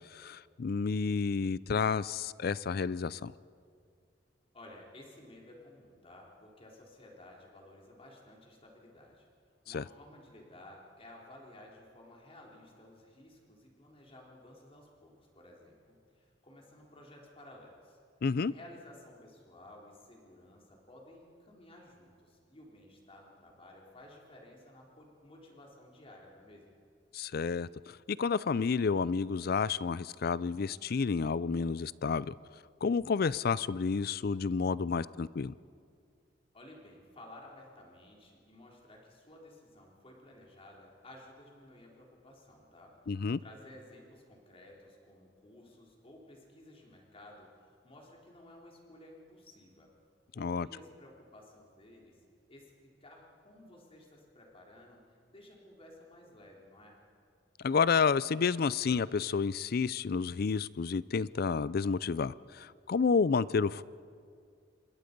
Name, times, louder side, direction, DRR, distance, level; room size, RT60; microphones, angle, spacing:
voice 1, 0.1-3.3 9.7-9.8 18.2-18.5 27.1-27.7 28.1-32.3 32.8-35.5 43.1-43.4 50.4-50.7 57.6-63.8, left 5 dB, 55° left, 19 dB, 0.4 m, -30 dB
voice 2, 4.5-9.3 9.6-18.0 18.5-26.7 36.5-49.9 50.3-52.2 52.5-57.0, left 1 dB, 30° left, -1 dB, 3.8 m, -55 dB
26.5 x 21.5 x 5.3 m, 2.2 s
head